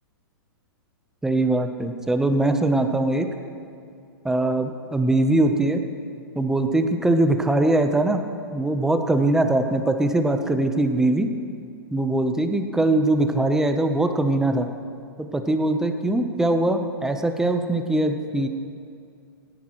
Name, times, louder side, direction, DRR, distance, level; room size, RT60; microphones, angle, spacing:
voice 1, 1.2-3.3 4.2-5.8 6.3-8.2 8.5-11.3 11.9-14.7 15.2-18.5, right 2 dB, 5° right, 6 dB, 0.9 m, -21 dB
27.0 x 10.0 x 3.2 m, 2.4 s
hypercardioid pair, 135°, 13 cm